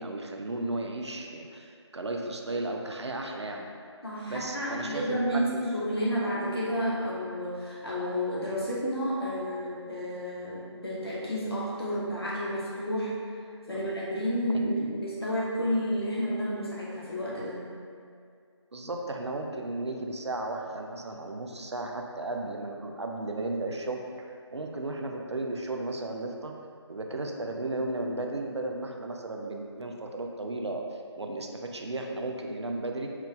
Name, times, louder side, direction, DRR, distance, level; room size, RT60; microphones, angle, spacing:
voice 1, 0.0-3.7 4.3-5.6 13.7-13.8 14.5-14.9 18.7-26.5 26.9-33.1, right 2 dB, 65° right, 2 dB, 0.4 m, -35 dB
voice 2, 4.0-13.2 13.7-17.7, equal, 55° left, -6 dB, 1.1 m, -31 dB
4.4 x 2.2 x 3.7 m, 2.2 s
figure-of-eight pair, 160°, 15 cm